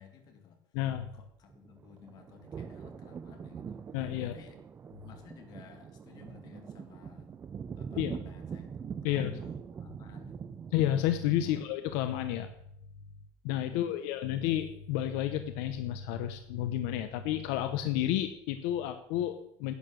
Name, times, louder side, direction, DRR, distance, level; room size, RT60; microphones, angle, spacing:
voice 1, 0.0-0.6 1.1-3.8 4.2-4.6 5.0-7.3 7.8-10.6 11.5-11.6 13.7-14.5, left 7 dB, 40° left, 5 dB, 2.2 m, -55 dB
voice 2, 0.7-1.1 3.9-4.3 8.0-8.2 9.0-9.4 10.7-12.5 13.4-19.7, left 12 dB, 80° left, 9 dB, 0.9 m, -31 dB
sound 1, 1.5-11.9, right 7 dB, 20° right, 0.4 m, -43 dB
11.0 x 8.8 x 6.4 m, 0.76 s
cardioid pair, 160°, 10 cm